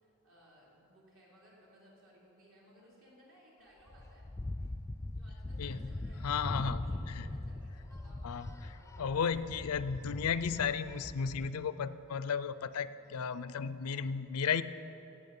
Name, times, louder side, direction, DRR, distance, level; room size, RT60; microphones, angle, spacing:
voice 1, 0.0-4.3 5.1-9.5 12.8-13.0, equal, 65° right, -5 dB, 3.6 m, -62 dB
sound 1, 3.9-11.5, left 2 dB, 15° left, 0.4 m, -41 dB
voice 2, 6.2-7.3 8.2-8.5 9.0-14.6, left 6 dB, 75° left, 14 dB, 0.4 m, -34 dB
16.0 x 8.9 x 5.4 m, 3.0 s
head